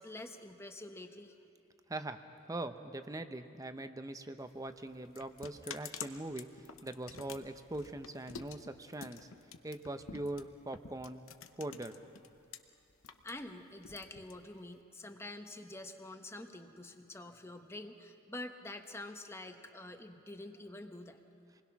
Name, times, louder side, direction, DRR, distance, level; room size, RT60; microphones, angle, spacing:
voice 1, 0.0-1.4 13.2-21.2, left 2 dB, 15° left, 6 dB, 1.1 m, -47 dB
voice 2, 1.9-2.2 2.5-9.3 9.6-11.2 11.6-12.0, right 1 dB, 15° right, 9 dB, 0.7 m, -42 dB
sound 1, 4.4-12.6 12.9-14.8, left 7 dB, 80° left, 0.9 m, -49 dB
26.5 x 20.5 x 5.9 m, 2.5 s
head